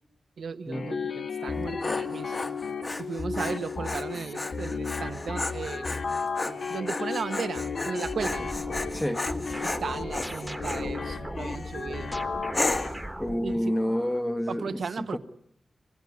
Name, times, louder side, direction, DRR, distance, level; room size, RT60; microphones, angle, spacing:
voice 1, 0.4-2.4 3.0-6.0 6.7-8.5 9.6-12.1 13.2-13.8 14.5-15.2, right 5 dB, 80° right, 1.1 m, -35 dB
sound 1, 0.7-12.9, left 5 dB, 60° left, 2.6 m, -34 dB
Dog, 1.4-10.9 11.4-11.8 12.5-13.0, left 2 dB, 30° left, 1.5 m, -34 dB
sound 2, 8.0-14.2, right 1 dB, 10° right, 1.3 m, -39 dB
voice 2, 13.2-15.2, equal, 10° left, 1.1 m, -29 dB
25.0 x 20.0 x 9.5 m
wide cardioid pair, 135°, 0 cm